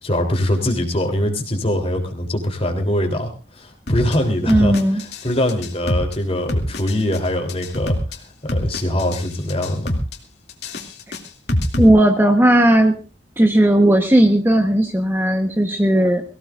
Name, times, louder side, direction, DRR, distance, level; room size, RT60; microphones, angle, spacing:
voice 1, 0.0-8.0 8.4-10.0, left 1 dB, 35° left, 4 dB, 3.5 m, -22 dB
sound 1, 3.9-4.1 4.5-5.2 5.5-6.1 6.5-7.2 7.5-8.1 8.5-9.2 9.5-10.2 10.5-11.9, left 1 dB, 65° left, 2.6 m, -23 dB
voice 2, 4.5-5.0 11.8-12.9 13.4-16.2, right 1 dB, 10° right, 4 dB, 1.2 m, -15 dB
23.5 x 16.5 x 2.6 m, 0.33 s
head